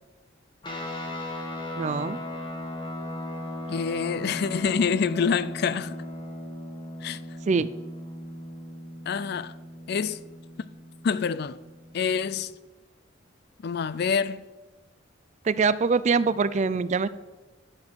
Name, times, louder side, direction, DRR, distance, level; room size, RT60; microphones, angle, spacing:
sound 1, 0.6-12.4, left 1 dB, 25° left, 1.6 m, -38 dB
voice 1, 1.8-2.2 7.5-7.7 15.4-17.1, right 4 dB, 40° right, 0.3 m, -23 dB
voice 2, 3.7-5.9 7.0-7.2 9.1-9.5 9.9-10.2 11.0-11.6 11.9-12.5 13.6-14.4, left 6 dB, 55° left, 0.4 m, -26 dB
11.5 x 4.3 x 8.0 m
head